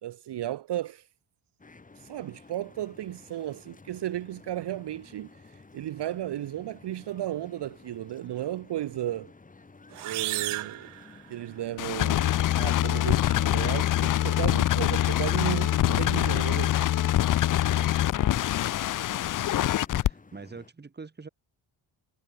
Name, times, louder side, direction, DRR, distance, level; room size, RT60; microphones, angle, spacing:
voice 1, 0.0-1.1 1.9-9.3 10.0-10.9 11.3-16.7 17.4-17.7, right 13 dB, 55° right, 1.5 m, -34 dB
sound 1, 1.6-20.7, left 3 dB, 15° left, 5.6 m, -53 dB
sound 2, 9.9-11.7, right 17 dB, 85° right, 1.2 m, -34 dB
sound 3, 11.8-20.1, left 13 dB, 40° left, 0.5 m, -24 dB
voice 2, 17.6-18.5 19.0-19.6 20.0-21.3, right 4 dB, 20° right, 7.9 m, -46 dB
cardioid pair, 170°, 49 cm